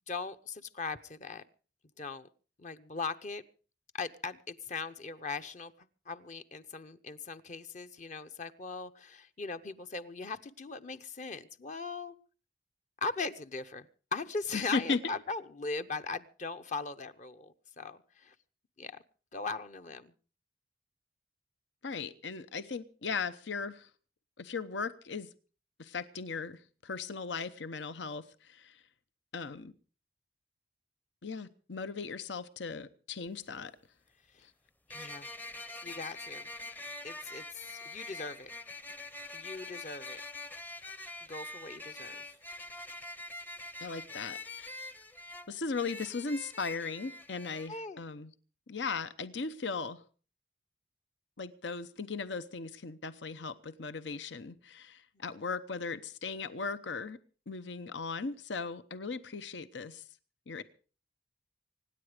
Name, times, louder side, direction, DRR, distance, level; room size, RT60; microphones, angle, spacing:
voice 1, 0.1-1.4 2.0-2.3 2.6-3.4 3.9-5.7 6.1-12.1 13.0-13.9 14.1-18.3 18.8-19.0 19.3-20.1 34.9-35.3 35.8-36.5 37.0-38.5 39.3-40.2 41.3-42.2 47.7-48.0, left 4 dB, 40° left, 10 dB, 0.8 m, -39 dB
voice 2, 14.5-15.2 21.8-23.9 24.4-25.3 25.8-28.8 29.3-29.7 31.2-33.7 34.4-34.5 43.8-44.9 45.5-48.3 48.7-50.0 51.4-57.2 57.5-60.0 60.5-60.6, left 4 dB, 85° left, 13 dB, 0.9 m, -37 dB
sound 1, 33.3-33.4 34.9-47.7, left 2 dB, 10° left, 0.6 m, -45 dB
25.0 x 10.0 x 5.0 m, 0.39 s
head